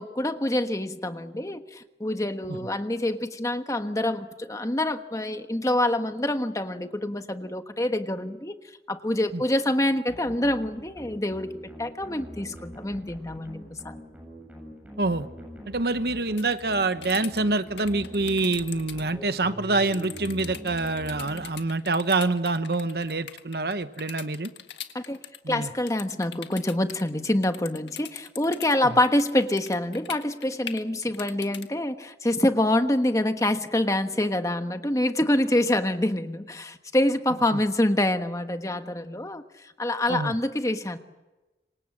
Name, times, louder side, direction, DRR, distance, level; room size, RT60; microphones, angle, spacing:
voice 1, 0.0-8.5 8.9-11.5 11.8-14.0 24.9-25.2 25.5-39.4 39.8-41.0, left 1 dB, 20° left, 8 dB, 1.3 m, -26 dB
sound 1, 10.1-21.9, equal, 10° right, 7.6 m, -43 dB
voice 2, 15.7-24.5 25.4-25.7 37.5-37.6 40.1-40.3, right 3 dB, 60° right, 11 dB, 1.1 m, -26 dB
sound 2, 16.4-19.0 19.9-28.8 29.0-31.7, left 10 dB, 80° left, 1.7 m, -41 dB
27.5 x 24.5 x 7.5 m, 1.1 s
head